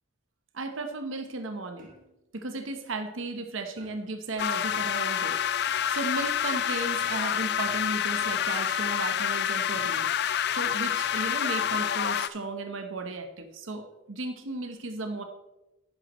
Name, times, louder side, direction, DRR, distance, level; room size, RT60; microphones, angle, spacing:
voice 1, 0.5-1.9 2.3-10.1 10.5-15.2, right 2 dB, 80° right, 7 dB, 1.0 m, -35 dB
sound 1, 1.8-2.3 3.8-4.3 5.7-6.2 8.2-8.7 9.7-10.2 11.6-12.0, right 2 dB, 45° right, 2.3 m, -57 dB
sound 2, 4.4-12.3, left 9 dB, 55° left, 0.4 m, -28 dB
10.5 x 10.0 x 3.1 m, 0.97 s
head